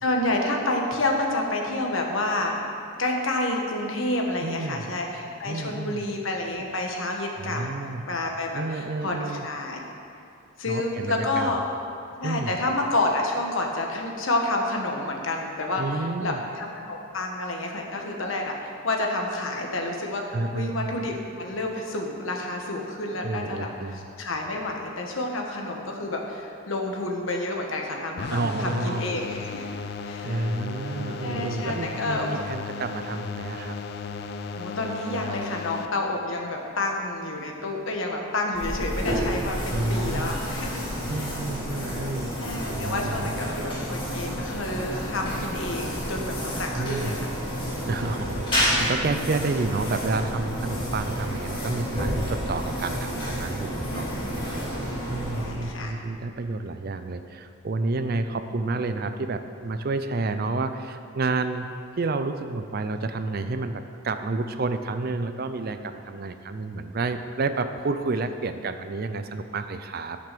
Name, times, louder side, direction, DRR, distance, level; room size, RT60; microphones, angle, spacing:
voice 1, 0.0-2.6 3.0-7.6 8.1-9.8 10.6-11.6 12.2-29.7 30.0-30.4 31.2-32.3 34.5-40.8 41.1-41.4 42.4-47.2 53.9-54.3 55.3-56.0, left 2 dB, 65° left, 1 dB, 1.4 m, -29 dB
voice 2, 4.4-4.9 5.4-6.1 7.4-8.1 8.5-9.5 10.7-11.6 12.2-12.6 15.8-16.4 20.3-21.0 23.2-24.1 28.3-29.1 30.2-33.8 39.7-40.4 41.1-42.3 42.7-43.3 46.8-47.1 47.8-54.1 54.4-54.6 55.1-70.2, right 3 dB, 45° right, 9 dB, 0.4 m, -30 dB
sound 1, 28.2-35.9, left 4 dB, 50° left, 0.5 m, -35 dB
sound 2, 38.5-55.9, equal, 25° left, 2.7 m, -30 dB
10.5 x 5.9 x 6.7 m, 2.5 s
head